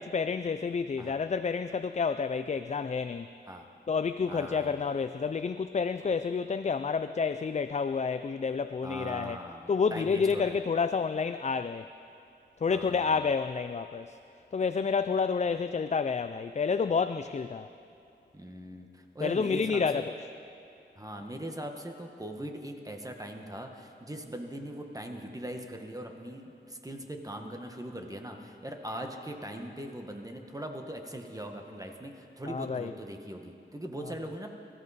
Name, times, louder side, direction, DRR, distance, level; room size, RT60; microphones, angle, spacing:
voice 1, 0.1-3.3 3.9-9.4 9.7-11.9 12.6-14.2 14.5-17.7 19.2-20.1 32.5-32.9, left 5 dB, 40° left, 11 dB, 0.4 m, -29 dB
voice 2, 4.3-4.8 8.8-10.6 12.7-13.2 18.3-20.1 20.9-34.5, right 1 dB, 20° right, 3 dB, 1.4 m, -40 dB
24.0 x 14.0 x 4.2 m, 2.6 s
wide cardioid pair, 75°, 19 cm